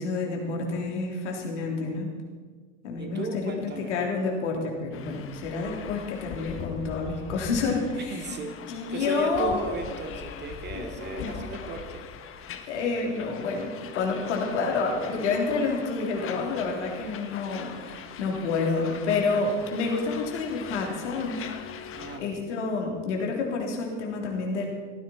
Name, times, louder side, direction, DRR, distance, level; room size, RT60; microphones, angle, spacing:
voice 1, 0.0-2.1 2.8-8.2 8.7-9.6 10.7-10.9 11.1-11.4 12.7-21.4 22.2-24.7, left 4 dB, 65° left, 0 dB, 3.5 m, -29 dB
voice 2, 1.5-2.1 3.0-4.0 8.0-8.6 8.9-12.0 21.9-22.5, right 3 dB, 25° right, 4 dB, 2.5 m, -36 dB
sound 1, 4.9-22.2, left 7 dB, 35° left, 1.4 m, -41 dB
18.0 x 15.0 x 4.5 m, 1.5 s
figure-of-eight pair, 70°, 38 cm